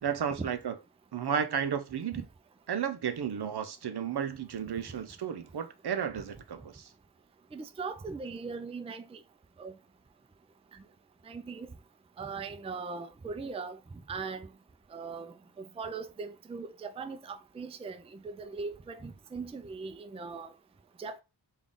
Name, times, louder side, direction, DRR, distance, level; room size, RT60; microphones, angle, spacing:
voice 1, 0.0-0.7 1.1-2.2 2.7-6.9, right 8 dB, 65° right, 0.6 m, -33 dB
voice 2, 7.5-9.2 9.6-9.7 11.3-11.7 12.2-13.8 14.1-14.5 14.9-20.5 21.0-21.2, right 4 dB, 15° right, 0.3 m, -40 dB
3.6 x 2.4 x 3.7 m
wide cardioid pair, 60°, 42 cm